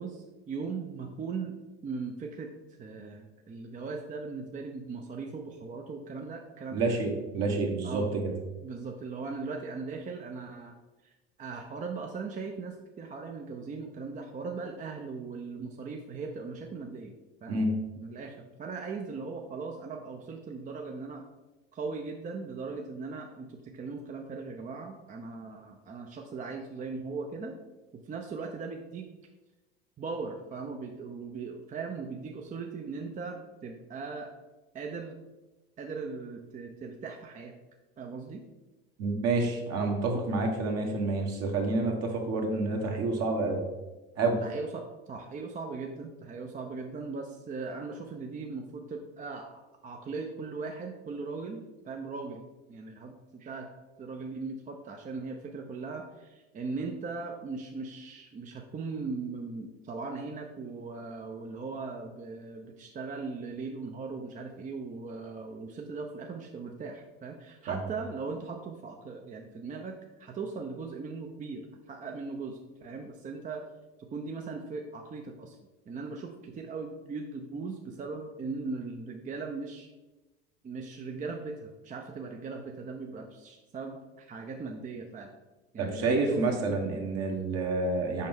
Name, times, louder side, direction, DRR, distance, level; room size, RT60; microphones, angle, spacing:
voice 1, 0.0-1.6 1.8-2.5 2.8-7.0 7.8-8.1 8.6-10.7 11.0-11.1 11.4-17.1 17.4-17.7 18.0-21.2 21.7-27.6 27.9-29.1 30.0-34.3 34.7-35.2 35.8-37.5 38.0-38.4 44.4-53.7 54.0-73.6 74.0-75.6 75.9-79.9 80.6-85.3 85.7-86.4, right 4 dB, 25° right, 3 dB, 0.6 m, -39 dB
voice 2, 6.7-8.0 17.5-17.7 39.0-43.6 44.2-44.4 67.7-67.8 85.8-88.3, right 3 dB, 50° right, 2 dB, 1.3 m, -28 dB
5.6 x 5.1 x 3.6 m, 1.1 s
hypercardioid pair, 70°, 32 cm